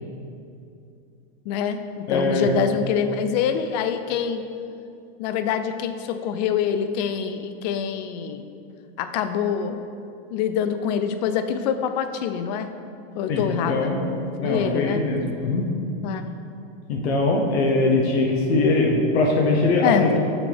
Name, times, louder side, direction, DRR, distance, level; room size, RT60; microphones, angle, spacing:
voice 1, 1.5-4.4 5.2-8.5 9.0-9.8 10.3-12.7 13.2-13.9 14.4-15.0 16.0-16.3 19.8-20.1, left 8 dB, 40° left, 9 dB, 0.4 m, -25 dB
voice 2, 2.1-2.5 13.3-14.0 14.3-15.7 16.9-20.2, left 2 dB, 85° left, 0 dB, 1.0 m, -21 dB
6.3 x 6.1 x 3.4 m, 2.6 s
supercardioid pair, 150°, 32 cm